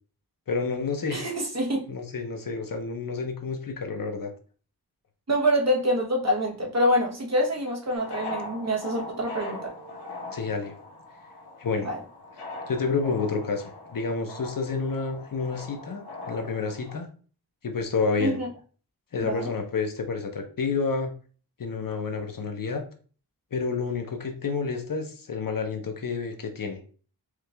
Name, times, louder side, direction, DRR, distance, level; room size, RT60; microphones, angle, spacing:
voice 1, 0.5-1.2 1.9-4.3 10.3-10.7 11.6-11.9 12.7-17.1 17.6-18.4 19.1-21.1 21.6-22.8 23.5-26.8, left 4 dB, 55° left, 4 dB, 0.8 m, -29 dB
voice 2, 1.1-1.8 5.3-9.7 11.8-12.0 18.2-18.5 19.2-19.5, equal, 40° right, 0 dB, 1.0 m, -26 dB
sound 1, 7.9-17.0, left 2 dB, 75° left, 1.4 m, -40 dB
4.8 x 2.4 x 3.3 m, 0.40 s
wide cardioid pair, 135°, 40 cm